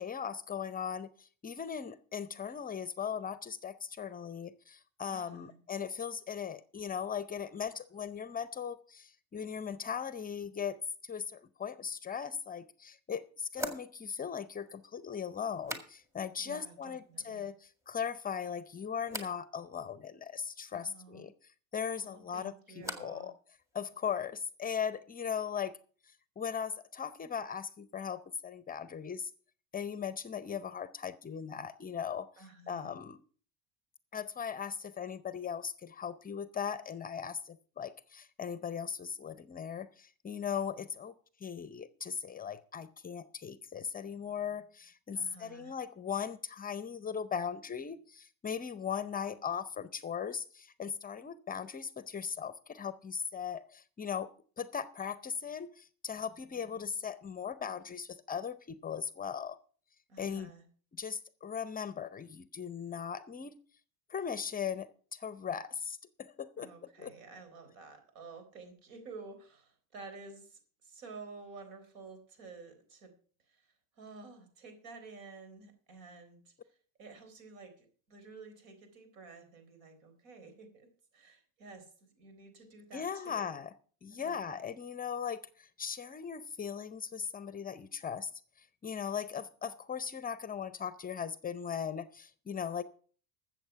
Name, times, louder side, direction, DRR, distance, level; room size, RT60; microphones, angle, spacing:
voice 1, 0.0-10.8 11.0-21.3 21.7-23.3 23.7-25.7 26.4-29.3 29.7-32.3 32.7-33.2 34.1-41.2 41.4-54.3 54.6-59.6 60.2-60.5 60.9-63.5 64.1-66.7 67.0-67.1 82.9-83.7 84.0-88.3 88.6-92.8, left 7 dB, 20° left, 15 dB, 0.6 m, -38 dB
voice 2, 5.0-5.6 16.4-17.5 20.7-21.3 22.0-23.3 32.4-32.9 45.1-45.7 60.1-60.6 66.6-73.1 73.5-83.5 84.1-84.6, right 4 dB, 80° right, 7 dB, 4.1 m, -52 dB
sound 1, 12.3-12.4 13.5-16.4 16.6-17.3 17.6-18.2 19.1-19.4 21.8-23.3 23.5-24.2, left 1 dB, 5° right, 2.0 m, -45 dB
13.5 x 7.4 x 5.7 m, 0.43 s
supercardioid pair, 110°, 40 cm